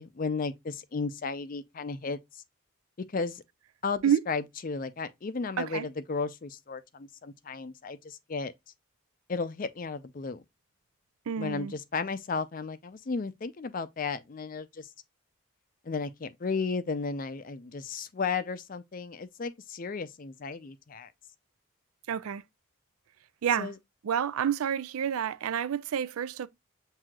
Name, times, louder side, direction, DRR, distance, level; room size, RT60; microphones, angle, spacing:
voice 1, 0.0-2.4 3.1-3.4 3.8-8.5 9.3-10.4 11.4-14.9 15.8-21.1 23.6-23.7, left 4 dB, 40° left, 0.4 m, -34 dB
voice 2, 11.3-11.7 22.1-22.4 23.4-23.7 24.0-26.5, right 8 dB, 85° right, 0.4 m, -29 dB
7.4 x 2.7 x 2.3 m
head